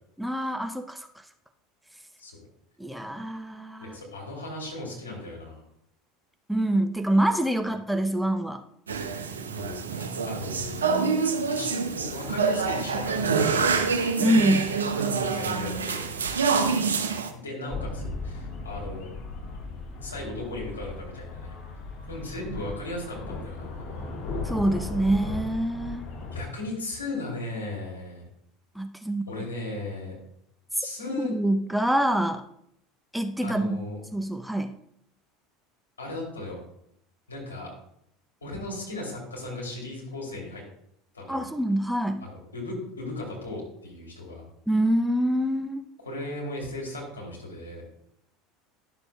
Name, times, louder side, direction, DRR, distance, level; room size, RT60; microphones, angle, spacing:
voice 1, 0.2-1.0 2.8-4.0 6.5-8.6 14.2-14.8 24.4-26.1 28.8-29.3 31.3-32.4 33.1-33.8 34.1-34.8 41.3-42.3 44.7-45.8, right 1 dB, 5° right, 7 dB, 0.6 m, -25 dB
voice 2, 3.8-5.6 9.5-11.1 11.5-13.8 14.9-16.1 17.3-19.1 20.0-21.5 22.1-24.1 26.3-28.3 29.3-30.1 30.8-31.3 33.4-34.0 36.0-36.6 37.3-37.7 38.4-40.6 41.1-41.4 42.2-44.4 46.0-47.8, left 2 dB, 85° left, -2 dB, 2.9 m, -36 dB
sound 1, 8.9-17.3, right 5 dB, 85° right, 0.6 m, -26 dB
sound 2, 17.7-26.4, left 3 dB, 50° left, 1.5 m, -36 dB
11.0 x 6.8 x 2.3 m, 0.72 s
hypercardioid pair, 75°, 0 cm